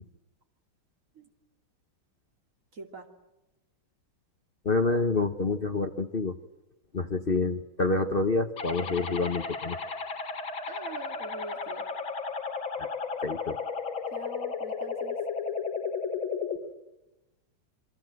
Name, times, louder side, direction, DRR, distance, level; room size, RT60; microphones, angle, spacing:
voice 1, 2.7-3.1 10.7-11.8 14.1-15.2, right 1 dB, 40° right, 4 dB, 3.2 m, -43 dB
voice 2, 4.6-6.4 6.9-9.8 12.8-12.9 13.2-13.6, left 3 dB, 35° left, 7 dB, 1.0 m, -27 dB
sound 1, 8.6-16.6, left 5 dB, 75° left, 3.2 m, -34 dB
28.0 x 23.0 x 7.8 m, 0.99 s
omnidirectional pair, 2.2 m